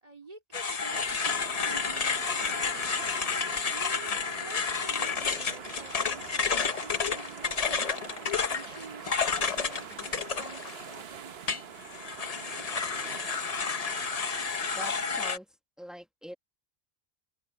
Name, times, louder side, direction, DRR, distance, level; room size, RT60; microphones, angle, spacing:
voice 1, 0.0-3.1 3.7-11.5, right 3 dB, 35° right, 2.6 m, -49 dB
sound 1, 0.5-11.0 11.5-15.4, left 5 dB, 40° left, 0.8 m, -31 dB
sound 2, 0.9-15.2, right 7 dB, 70° right, 1.1 m, -44 dB
voice 2, 14.8-15.5 15.8-16.4, equal, ahead, 1.6 m, -43 dB
open air
omnidirectional pair, 1.1 m